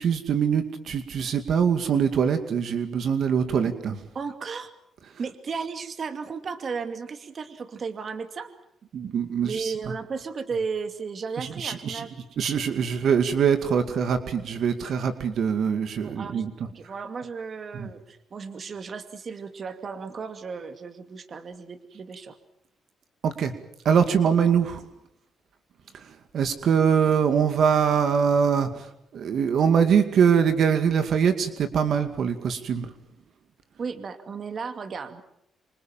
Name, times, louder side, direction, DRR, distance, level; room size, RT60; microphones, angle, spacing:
voice 1, 0.0-4.0 8.9-9.7 11.4-12.0 12.4-16.5 17.7-17.9 23.2-23.5 23.8-24.8 25.9-26.0 26.3-28.9 29.1-32.9, right 7 dB, 65° right, 8 dB, 2.3 m, -23 dB
voice 2, 4.1-4.7 5.2-8.5 9.4-12.2 16.0-22.4 33.8-35.2, right 5 dB, 45° right, 9 dB, 2.4 m, -34 dB
26.5 x 25.5 x 7.5 m, 0.77 s
cardioid pair, 90°, 0 cm